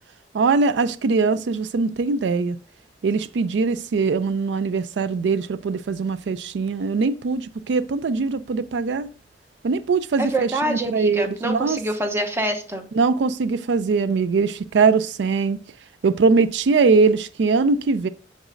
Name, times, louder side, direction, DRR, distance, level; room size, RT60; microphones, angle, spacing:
voice 1, 0.3-2.6 3.0-9.1 9.6-11.8 12.9-15.6 16.0-18.1, right 4 dB, 90° right, 0.4 m, -21 dB
voice 2, 10.2-12.9, right 1 dB, 15° right, 0.8 m, -26 dB
7.9 x 6.5 x 2.5 m
head